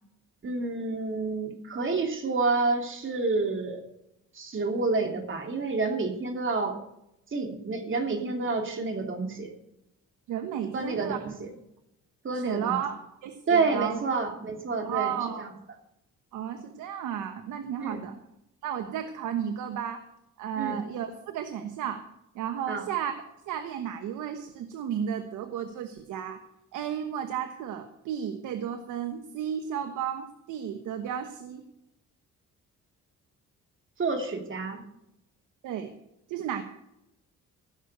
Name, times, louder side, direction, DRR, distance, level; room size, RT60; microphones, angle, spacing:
voice 1, 0.4-3.8 4.3-6.8 7.3-9.5 10.7-11.5 12.2-12.8 13.5-15.5 17.8-18.0 20.6-20.8 22.7-22.8 34.0-34.9, right 3 dB, 40° right, 3 dB, 3.0 m, -29 dB
voice 2, 10.3-11.2 12.3-14.0 14.8-15.5 16.3-18.1 18.6-20.1 20.4-22.1 22.3-23.1 23.5-26.4 26.7-31.6 35.6-35.9 36.3-36.6, right 9 dB, 85° right, 8 dB, 1.2 m, -33 dB
16.0 x 6.4 x 6.8 m, 0.84 s
cardioid pair, 90°, 30 cm